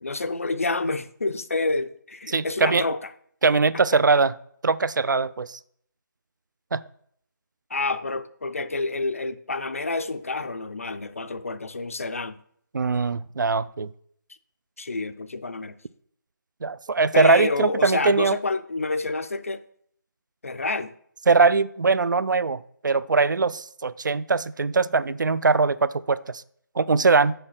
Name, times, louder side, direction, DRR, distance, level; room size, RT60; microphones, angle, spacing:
voice 1, 0.0-3.0 4.1-4.2 7.7-12.4 14.8-15.8 17.1-19.6 20.4-20.9, left 3 dB, 40° left, 12 dB, 0.4 m, -28 dB
voice 2, 2.3-2.8 3.4-4.4 4.6-5.6 6.7-6.8 12.7-13.9 16.6-18.4 21.3-26.2 26.8-27.3, right 4 dB, 65° right, 18 dB, 0.4 m, -21 dB
6.7 x 5.4 x 5.7 m, 0.65 s
figure-of-eight pair, 175°, 11 cm